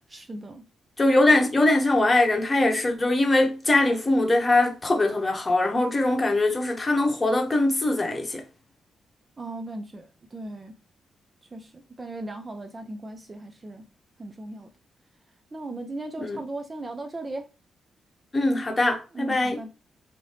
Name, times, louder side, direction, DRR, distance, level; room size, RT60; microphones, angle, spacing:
voice 1, 0.1-0.6 9.4-10.1 10.3-10.7 11.5-11.7 12.0-13.8 14.2-14.7 15.5-17.4 19.1-19.7, right 2 dB, 25° right, 0.5 m, -37 dB
voice 2, 1.0-8.4 16.2-16.4 18.3-19.6, left 2 dB, 25° left, 0.9 m, -22 dB
4.2 x 2.7 x 3.2 m
cardioid pair, 110°, 0 cm